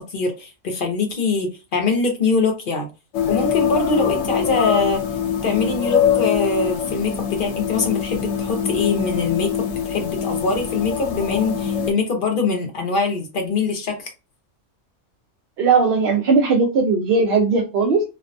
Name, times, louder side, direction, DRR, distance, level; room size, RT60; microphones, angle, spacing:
voice 1, 0.0-2.9 3.3-5.0 5.4-14.1, left 4 dB, 55° left, 3 dB, 0.7 m, -23 dB
sound 1, 3.1-11.9, left 8 dB, 85° left, 0.9 m, -23 dB
voice 2, 15.6-18.0, right 4 dB, 60° right, 0 dB, 0.7 m, -18 dB
2.5 x 2.1 x 2.5 m, 0.29 s
omnidirectional pair, 1.3 m